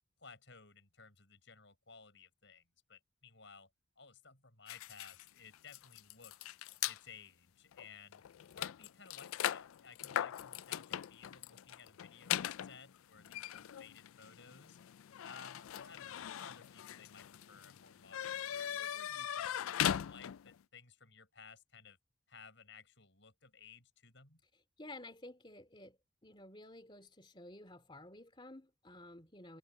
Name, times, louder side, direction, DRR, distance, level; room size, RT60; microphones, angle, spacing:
voice 1, 0.2-3.7 4.0-6.6 6.8-8.2 8.5-14.8 15.2-22.0 22.3-24.4, left 5 dB, 60° left, 6.4 m, -57 dB
sound 1, 4.7-7.0 7.7-7.9 8.1-20.6, left 10 dB, 85° left, 0.4 m, -40 dB
voice 2, 24.8-29.6, left 1 dB, 25° left, 3.0 m, -53 dB
head